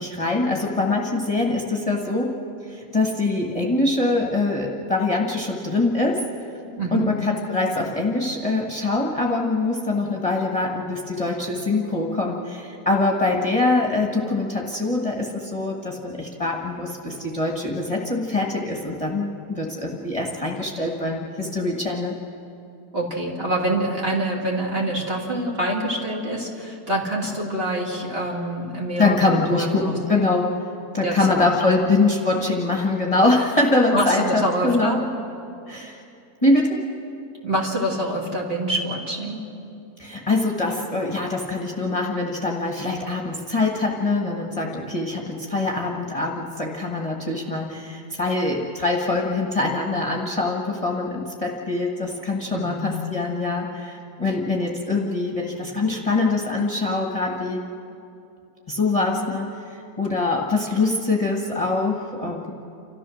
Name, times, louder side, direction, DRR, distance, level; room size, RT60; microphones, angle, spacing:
voice 1, 0.0-2.3 2.7-6.2 6.9-22.1 29.0-30.5 30.9-35.0 35.7-36.0 36.4-36.8 40.0-57.6 58.7-62.5, left 2 dB, 20° left, -1 dB, 1.5 m, -23 dB
voice 2, 6.8-7.1 22.9-30.2 31.0-31.9 33.9-35.0 37.4-39.4 52.5-52.9 54.2-54.4, right 1 dB, 35° right, -3 dB, 2.9 m, -26 dB
29.5 x 14.0 x 6.4 m, 2.6 s
omnidirectional pair, 1.7 m